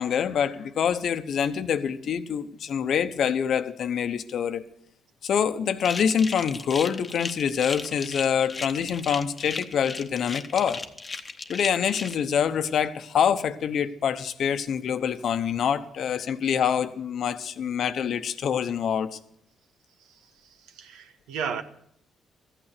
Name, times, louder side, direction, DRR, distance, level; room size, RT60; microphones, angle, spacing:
voice 1, 0.0-4.7 5.2-10.8 11.5-19.2, left 8 dB, 65° left, 0.9 m, -26 dB
sound 1, 5.8-12.1, left 3 dB, 25° left, 1.0 m, -36 dB
voice 2, 20.1-21.6, right 7 dB, 90° right, 1.1 m, -35 dB
14.0 x 9.0 x 6.6 m
cardioid pair, 90°, 0 cm